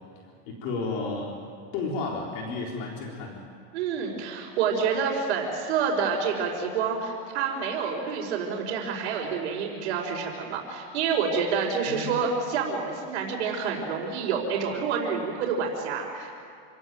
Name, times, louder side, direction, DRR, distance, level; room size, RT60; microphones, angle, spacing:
voice 1, 0.5-1.4 1.7-3.4 11.9-12.1, left 3 dB, 55° left, -1 dB, 4.0 m, -32 dB
voice 2, 3.7-16.3, right 6 dB, 75° right, -6 dB, 4.9 m, -28 dB
28.0 x 17.0 x 9.3 m, 2.4 s
supercardioid pair, 155°, 33 cm